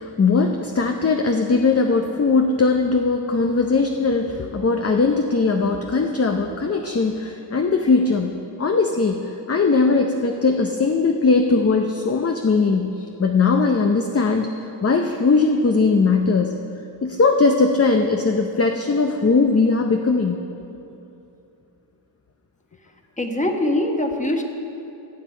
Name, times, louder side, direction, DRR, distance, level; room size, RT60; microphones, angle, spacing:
voice 1, 0.0-8.3 8.6-16.6 17.0-20.4, left 4 dB, 30° left, 4 dB, 0.6 m, -19 dB
voice 2, 23.2-24.4, left 1 dB, 15° left, 3 dB, 1.2 m, -22 dB
18.0 x 7.3 x 4.4 m, 2.8 s
cardioid pair, 60°, 48 cm